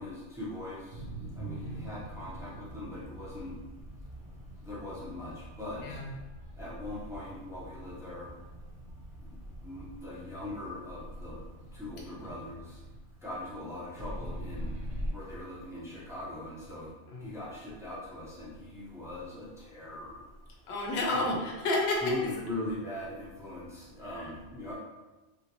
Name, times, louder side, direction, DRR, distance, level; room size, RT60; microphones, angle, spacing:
voice 1, 0.0-3.6 4.6-6.0 6.6-8.3 9.2-9.4 9.6-11.4 11.7-12.8 13.2-14.7 15.0-16.9 17.2-20.3 21.1-21.4 22.0-24.8, left 1 dB, 5° right, -8 dB, 0.8 m, -41 dB
sound 1, 0.9-13.0 14.0-15.1, equal, 65° right, 1.2 m, -43 dB
voice 2, 1.4-1.8 5.8-6.1 12.2-12.3 17.1-17.3 20.7-22.4 24.1-24.3, left 2 dB, 70° left, -1 dB, 0.9 m, -31 dB
3.3 x 2.8 x 2.9 m, 1.1 s
omnidirectional pair, 1.2 m